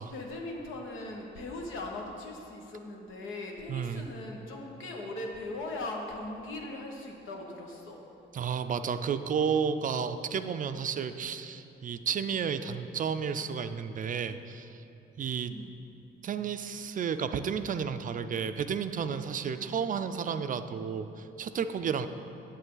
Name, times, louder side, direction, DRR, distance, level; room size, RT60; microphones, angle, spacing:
voice 1, 0.1-8.0 15.5-15.7, left 2 dB, 80° left, 0 dB, 1.2 m, -39 dB
voice 2, 3.7-4.1 8.3-14.8 15.2-15.5 16.2-22.1, right 7 dB, 45° right, 10 dB, 0.4 m, -32 dB
8.2 x 8.1 x 3.9 m, 2.8 s
cardioid pair, 90°, 20 cm